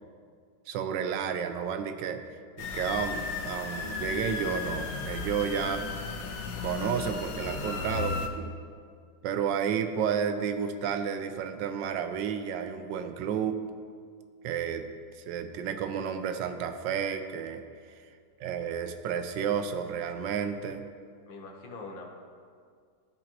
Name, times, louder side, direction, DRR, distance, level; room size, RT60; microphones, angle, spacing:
voice 1, 0.7-2.2 2.6-5.9 6.6-8.5 9.2-13.6 14.4-14.9 15.2-17.6 18.4-20.8, right 7 dB, 85° right, 8 dB, 1.3 m, -31 dB
sound 1, 2.6-8.3, left 5 dB, 70° left, 1.3 m, -35 dB
voice 2, 21.3-22.1, left 3 dB, 90° left, 0 dB, 1.8 m, -43 dB
15.5 x 5.2 x 2.9 m, 2.1 s
omnidirectional pair, 1.9 m